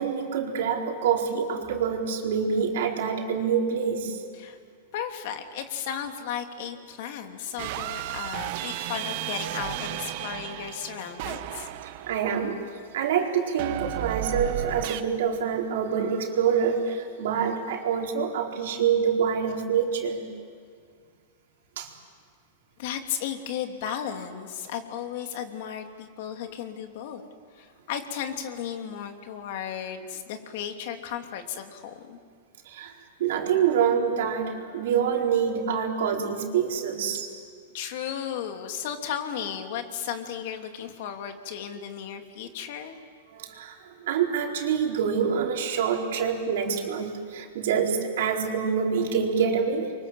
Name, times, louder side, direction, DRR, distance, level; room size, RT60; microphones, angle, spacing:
voice 1, 0.0-4.2 11.8-12.6 12.9-20.3 21.8-21.9 32.6-37.3 43.3-49.9, right 7 dB, 75° right, 1 dB, 4.4 m, -26 dB
voice 2, 4.9-11.7 22.8-27.2 27.5-32.2 37.7-43.0, left 9 dB, 60° left, 5 dB, 2.7 m, -35 dB
sound 1, 7.6-12.7 13.6-15.0, right 13 dB, 55° right, 1.3 m, -33 dB
28.5 x 24.0 x 7.7 m, 2.1 s
supercardioid pair, 140°, 0 cm